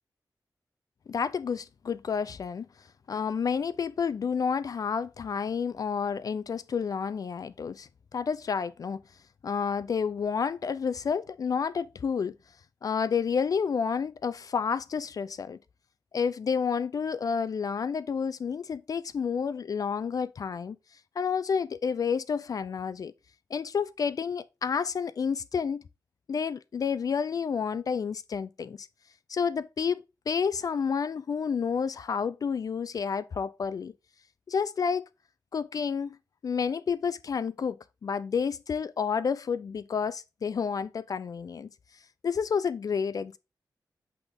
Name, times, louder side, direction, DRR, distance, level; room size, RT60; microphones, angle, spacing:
voice 1, 1.1-2.7 3.1-9.0 9.4-12.3 12.8-15.6 16.1-20.8 21.2-23.1 23.5-25.8 26.3-28.9 29.3-33.9 34.5-35.0 35.5-36.2 36.4-41.7 42.2-43.4, left 6 dB, 55° left, 0.4 m, -30 dB
8.2 x 3.5 x 3.7 m
wide cardioid pair, 145°, 7 cm